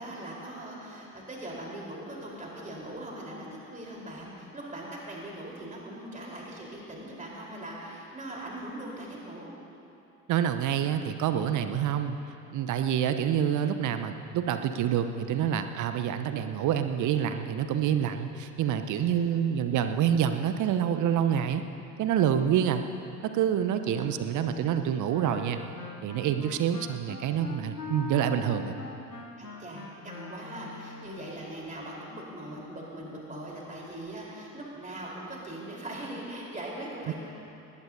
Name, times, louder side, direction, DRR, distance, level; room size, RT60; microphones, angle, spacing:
voice 1, 0.0-9.5 18.9-19.4 24.0-24.1 29.4-37.2, right 1 dB, 15° right, -3 dB, 4.2 m, -41 dB
voice 2, 10.3-12.2 12.5-21.6 22.0-22.8 23.2-25.6 26.0-28.8, right 9 dB, 40° right, 9 dB, 0.9 m, -27 dB
Wind instrument woodwind instrument, 25.1-31.5, left 3 dB, 90° left, 1.0 m, -42 dB
20.0 x 18.0 x 2.8 m, 2.8 s
figure-of-eight pair, 60°, 46 cm